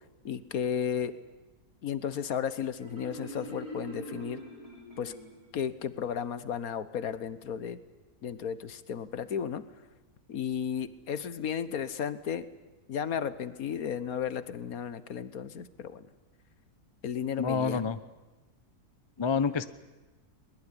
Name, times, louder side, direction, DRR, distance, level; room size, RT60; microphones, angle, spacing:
voice 1, 0.2-1.2 1.8-4.4 5.0-5.1 5.5-7.8 8.2-9.6 10.3-12.5 12.9-16.1 17.0-17.8, left 8 dB, 65° left, 14 dB, 1.5 m, -34 dB
Marimba xylophone, 2.8-5.6, right 1 dB, 90° right, 7.6 m, -43 dB
voice 2, 17.4-18.0 19.2-19.6, left 5 dB, 30° left, 13 dB, 0.6 m, -28 dB
22.0 x 20.5 x 9.9 m, 1.1 s
omnidirectional pair, 1.6 m